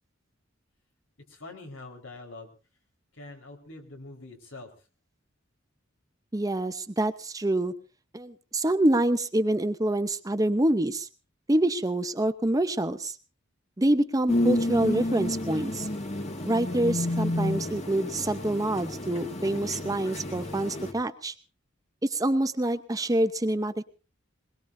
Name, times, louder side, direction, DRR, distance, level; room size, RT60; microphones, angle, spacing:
voice 1, 1.3-2.5 3.1-4.7, left 2 dB, 85° left, 3 dB, 4.8 m, -44 dB
voice 2, 6.3-7.7 8.1-11.1 11.5-13.1 13.8-15.9 16.5-21.3 22.0-23.8, right 1 dB, 20° right, 10 dB, 0.8 m, -26 dB
sound 1, 14.3-20.9, left 1 dB, 35° left, 1.8 m, -30 dB
22.0 x 21.0 x 2.7 m, 0.34 s
head